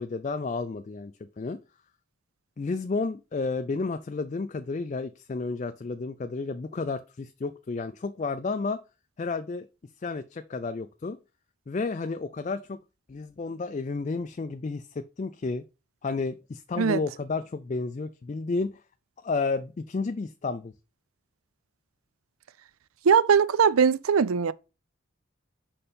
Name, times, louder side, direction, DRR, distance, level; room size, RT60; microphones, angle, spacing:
voice 1, 0.0-1.6 2.6-8.8 9.2-9.7 10.0-11.2 11.7-12.8 13.1-15.6 16.0-18.8 19.2-20.7, left 3 dB, 35° left, 0.3 m, -31 dB
voice 2, 23.1-24.5, right 6 dB, 90° right, 0.4 m, -20 dB
5.5 x 4.3 x 5.1 m
head